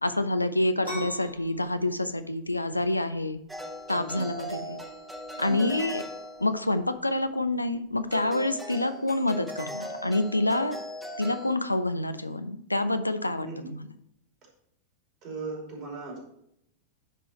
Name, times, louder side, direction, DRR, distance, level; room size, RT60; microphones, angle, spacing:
voice 1, 0.0-3.4 3.9-4.8 5.4-6.0 6.4-10.8 11.2-13.9, left 2 dB, 85° left, 10 dB, 0.4 m, -27 dB
sound 1, 0.8-8.2, equal, 90° right, 2.9 m, -45 dB
sound 2, 3.5-6.9 8.1-11.6, equal, 10° right, 1.0 m, -39 dB
voice 2, 15.2-16.2, right 3 dB, 40° right, -1 dB, 2.8 m, -37 dB
10.0 x 3.8 x 4.2 m, 0.75 s
figure-of-eight pair, 90°, 0 cm